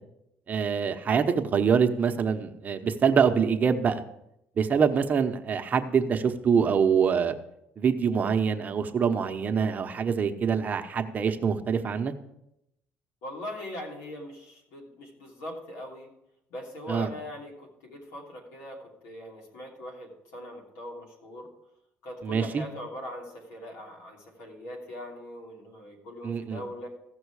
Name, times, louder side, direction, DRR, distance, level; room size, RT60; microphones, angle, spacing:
voice 1, 0.5-4.0 4.6-7.3 7.8-12.1 16.9-17.1 22.2-22.6 26.2-26.6, right 6 dB, 35° right, 7 dB, 0.9 m, -25 dB
voice 2, 13.2-16.1 16.5-21.5 22.0-26.9, left 1 dB, 85° left, 0 dB, 2.9 m, -41 dB
15.5 x 6.2 x 4.8 m, 0.82 s
cardioid pair, 110°, 5 cm